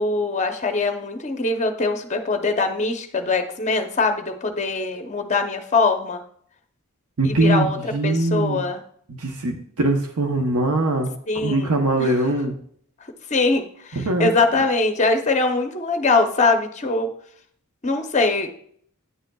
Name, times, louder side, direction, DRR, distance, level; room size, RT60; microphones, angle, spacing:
voice 1, 0.0-6.2 7.2-8.8 11.3-12.2 13.3-17.1 17.8-18.5, left 3 dB, 30° left, 6 dB, 0.7 m, -22 dB
voice 2, 7.2-8.7 9.1-12.6 14.0-14.3, right 2 dB, 90° right, 4 dB, 0.8 m, -22 dB
9.3 x 6.4 x 2.3 m, 0.62 s
head